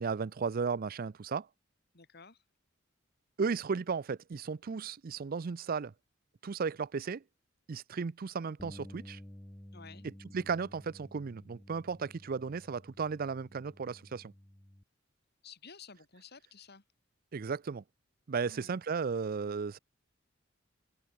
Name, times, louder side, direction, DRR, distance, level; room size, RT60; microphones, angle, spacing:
voice 1, 0.0-1.5 3.4-5.9 6.4-7.2 7.7-9.2 10.3-14.3 17.3-17.8 18.3-19.8, right 5 dB, 50° right, 0.5 m, -35 dB
voice 2, 1.9-2.4 9.7-10.1 15.4-16.8 18.4-18.8, left 5 dB, 55° left, 2.7 m, -53 dB
Bass guitar, 8.6-14.8, left 1 dB, 10° left, 0.8 m, -52 dB
open air
head